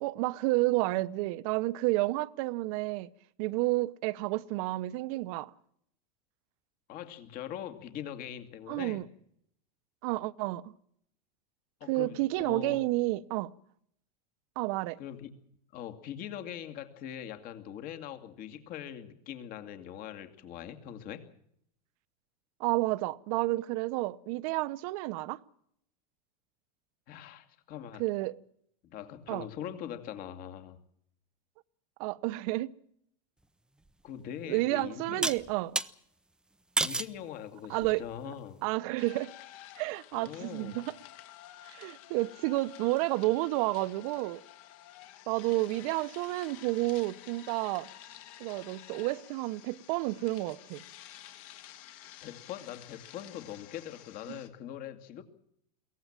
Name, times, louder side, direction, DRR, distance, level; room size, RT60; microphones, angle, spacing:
voice 1, 0.0-3.1 3.4-5.5 8.7-9.1 10.0-10.7 11.9-13.5 14.6-15.0 22.6-25.4 28.0-28.4 29.3-29.5 32.0-32.7 34.5-35.8 37.7-38.3 38.6-39.3 39.8-41.0 41.6-44.4 45.3-47.9 48.4-50.8 54.3-54.4, right 19 dB, 60° right, 1.0 m, -30 dB
voice 2, 6.9-9.0 11.8-12.8 15.0-15.3 15.7-21.3 27.1-28.0 28.8-30.8 34.0-35.3 36.8-38.6 40.1-40.8 52.2-55.2, left 10 dB, 45° left, 2.5 m, -42 dB
sound 1, 33.9-34.0 35.2-35.9 36.8-37.2 37.8-38.2, right 2 dB, 5° right, 0.7 m, -30 dB
sound 2, 39.0-54.5, left 13 dB, 60° left, 2.9 m, -51 dB
22.5 x 18.0 x 7.4 m
supercardioid pair, 135°, 21 cm